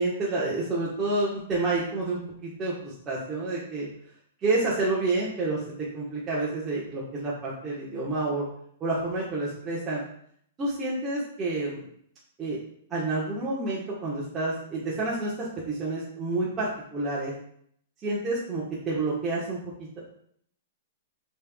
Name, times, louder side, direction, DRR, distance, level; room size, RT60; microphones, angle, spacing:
voice 1, 0.0-3.9 4.4-8.4 8.8-10.0 10.6-11.8 12.4-12.6 12.9-17.3 18.0-19.6, right 2 dB, 25° right, -7 dB, 1.3 m, -29 dB
6.6 x 3.4 x 2.3 m, 0.66 s
hypercardioid pair, 120°, 0 cm